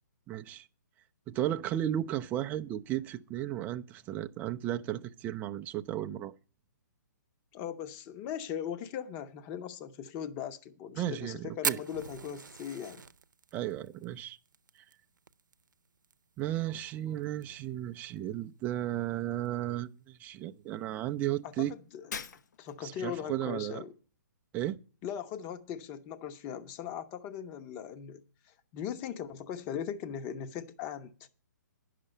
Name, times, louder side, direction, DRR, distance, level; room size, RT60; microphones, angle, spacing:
voice 1, 0.3-0.7 1.3-6.3 11.0-11.8 13.5-14.4 16.4-21.7 22.8-23.8 24.5-24.8, right 12 dB, 15° right, 0.5 m, -34 dB
voice 2, 7.5-13.0 21.4-21.7 21.9-22.1 22.6-23.9 25.0-31.3, left 9 dB, 25° left, 0.9 m, -39 dB
Fire, 11.6-16.1 16.4-16.5 16.7-16.8 17.2-17.6 18.2-18.3 19.3-19.5, right 5 dB, 90° right, 0.7 m, -38 dB
Shatter, 22.1-22.9, left 6 dB, 65° left, 1.1 m, -42 dB
10.0 x 6.7 x 8.7 m
hypercardioid pair, 150°, 10 cm